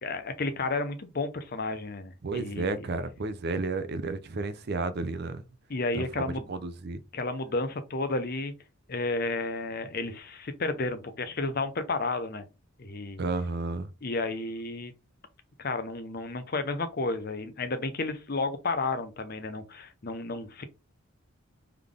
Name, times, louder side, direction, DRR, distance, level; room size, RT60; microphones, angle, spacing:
voice 1, 0.0-2.9 5.7-6.5 7.1-8.5 8.9-12.4 12.8-13.2 14.0-14.9 15.6-20.6, left 3 dB, 45° left, 0.6 m, -32 dB
voice 2, 2.2-5.4 5.9-7.0 13.2-13.9, right 3 dB, 45° right, 0.4 m, -32 dB
3.8 x 3.4 x 3.5 m
head